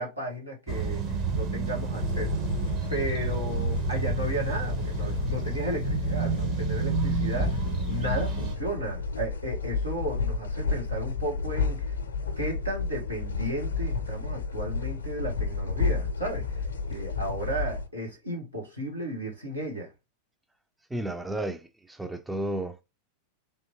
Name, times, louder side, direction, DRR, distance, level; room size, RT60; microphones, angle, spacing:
voice 1, 0.0-2.3 2.9-12.0 12.4-16.6 16.9-19.9, right 1 dB, 90° right, 1.3 m, -34 dB
sound 1, 0.7-8.5, right 5 dB, 35° right, 0.7 m, -30 dB
sound 2, 2.0-17.9, left 4 dB, 70° left, 0.5 m, -31 dB
voice 2, 20.9-22.8, right 1 dB, 5° right, 0.3 m, -33 dB
3.5 x 2.7 x 2.8 m
figure-of-eight pair, 90°, 0 cm